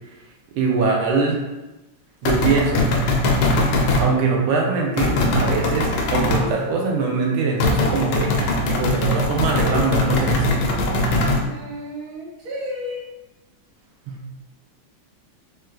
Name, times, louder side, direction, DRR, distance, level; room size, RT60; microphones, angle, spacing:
voice 1, 0.6-1.4 2.2-2.9 4.0-10.5 14.1-14.2, right 4 dB, 90° right, 0 dB, 1.5 m, -22 dB
sound 1, 2.3-4.1 5.0-6.5 7.6-11.4, left 1 dB, 80° left, 1.4 m, -20 dB
voice 2, 11.4-13.0, left 1 dB, 60° right, -5 dB, 1.1 m, -32 dB
4.1 x 2.3 x 2.3 m, 1.1 s
omnidirectional pair, 2.2 m